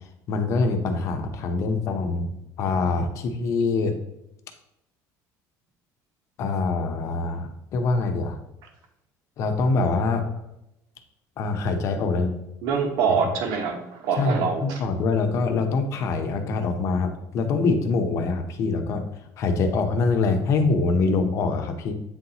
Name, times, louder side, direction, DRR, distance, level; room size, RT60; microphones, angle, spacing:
voice 1, 0.3-3.9 6.4-8.4 9.4-10.3 11.4-12.3 14.1-19.0 19.4-21.9, left 3 dB, 45° left, 6 dB, 0.7 m, -24 dB
voice 2, 12.6-14.8, right 6 dB, 70° right, 3 dB, 1.2 m, -25 dB
8.4 x 4.0 x 2.9 m, 0.86 s
cardioid pair, 170°, 7 cm